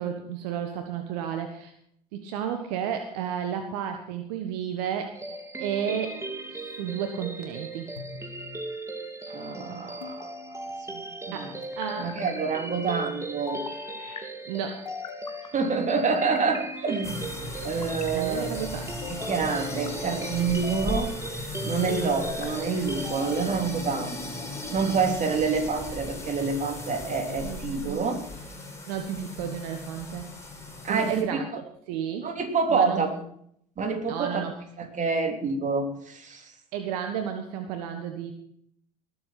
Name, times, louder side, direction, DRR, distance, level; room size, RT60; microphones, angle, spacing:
voice 1, 0.0-1.7 2.1-6.2 6.5-7.9 11.3-12.1 14.0-14.8 17.8-18.9 27.4-28.1 28.9-30.3 30.9-32.4 32.7-33.0 34.0-34.5 36.7-38.3, right 8 dB, 70° right, 6 dB, 1.6 m, -33 dB
sound 1, 5.1-23.5, right 2 dB, 15° right, 2.4 m, -38 dB
sound 2, 8.0-8.6 10.0-10.8 11.6-12.4 13.5-14.2 14.8-15.5 16.1-17.0 17.6-18.3 19.0-19.9 20.5-21.1 21.8-22.6, left 6 dB, 85° left, 1.5 m, -40 dB
voice 2, 9.3-10.3 10.9-11.5 12.0-13.6 15.5-17.2 17.6-18.5 19.1-21.1 21.6-24.2 24.7-28.2 30.8-31.4 32.2-33.2 33.8-36.5, right 5 dB, 35° right, 4 dB, 3.4 m, -27 dB
sound 3, 17.0-31.2, left 1 dB, 15° left, 5.3 m, -37 dB
19.5 x 8.0 x 6.0 m, 0.66 s
hypercardioid pair, 65°, 21 cm